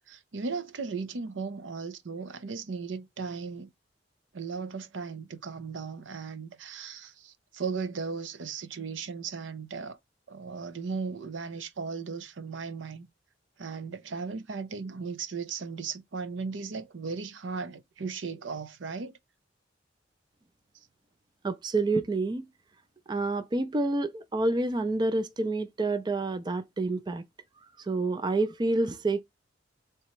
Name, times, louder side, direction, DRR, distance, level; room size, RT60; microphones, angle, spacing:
voice 1, 0.1-3.7 4.3-10.0 10.3-13.1 13.6-19.2, right 5 dB, 85° right, 0.6 m, -36 dB
voice 2, 21.4-22.5 23.1-27.2 27.8-29.2, right 2 dB, 25° right, 0.4 m, -28 dB
3.4 x 2.9 x 4.3 m
head